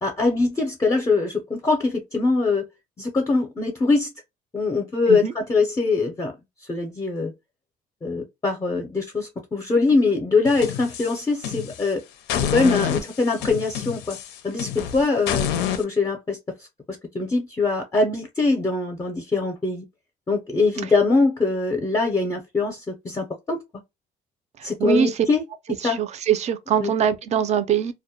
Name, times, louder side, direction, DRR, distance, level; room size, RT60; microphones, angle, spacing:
voice 1, 0.0-2.6 3.0-4.1 4.5-6.3 6.7-7.3 8.0-12.0 12.5-14.2 14.4-19.8 20.3-23.6 24.6-25.4 25.8-26.0 26.8-26.9, left 3 dB, 20° left, 0.5 m, -23 dB
sound 1, 10.4-11.9 12.3-15.8, left 9 dB, 90° left, 0.4 m, -28 dB
voice 2, 24.6-25.1 25.8-27.9, right 8 dB, 40° right, 0.4 m, -23 dB
2.2 x 2.1 x 2.7 m
cardioid pair, 110°, 17 cm